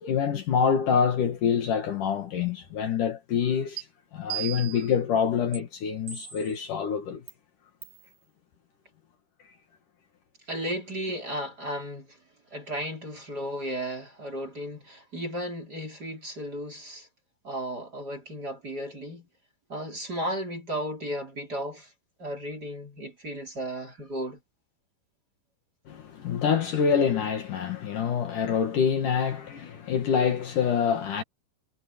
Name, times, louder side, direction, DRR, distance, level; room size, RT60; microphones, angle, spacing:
voice 1, 0.0-3.9 4.1-7.2 25.9-31.2, left 7 dB, 60° left, 3.2 m, -26 dB
sound 1, 3.8-3.9 4.3-4.9 5.5-5.6 6.1-6.6 7.3-7.4 7.8-8.0, right 13 dB, 60° right, 4.3 m, -36 dB
voice 2, 10.5-12.2 12.5-17.1 17.4-19.3 19.7-21.9 22.2-24.4, equal, 25° right, 4.6 m, -34 dB
omnidirectional pair, 4.3 m